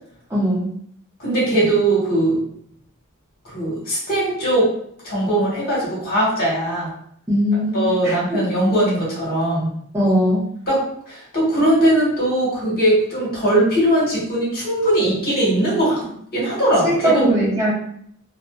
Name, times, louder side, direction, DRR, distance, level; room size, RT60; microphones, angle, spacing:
voice 1, 0.3-0.7 7.3-8.1 9.9-10.4 16.8-17.7, equal, 10° right, -8 dB, 0.8 m, -19 dB
voice 2, 1.2-2.4 3.4-4.7 5.0-6.9 7.7-9.7 10.7-10.8 11.1-16.0 16.3-17.3, right 1 dB, 45° left, -6 dB, 1.3 m, -20 dB
2.5 x 2.3 x 2.2 m, 0.67 s
head